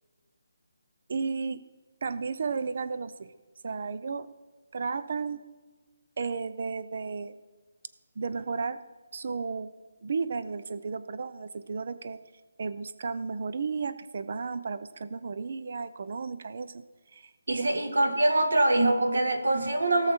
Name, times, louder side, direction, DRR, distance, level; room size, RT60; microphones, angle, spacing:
voice 1, 1.1-1.6 2.0-3.3 3.6-4.3 4.7-5.4 6.2-7.4 8.2-8.8 9.1-9.7 10.0-12.2 12.6-16.7 17.1-17.7, right 5 dB, 35° right, 14 dB, 0.5 m, -33 dB
voice 2, 17.5-20.1, right 2 dB, 85° right, 6 dB, 1.9 m, -24 dB
17.5 x 6.5 x 4.4 m, 1.3 s
hypercardioid pair, 180°, 0 cm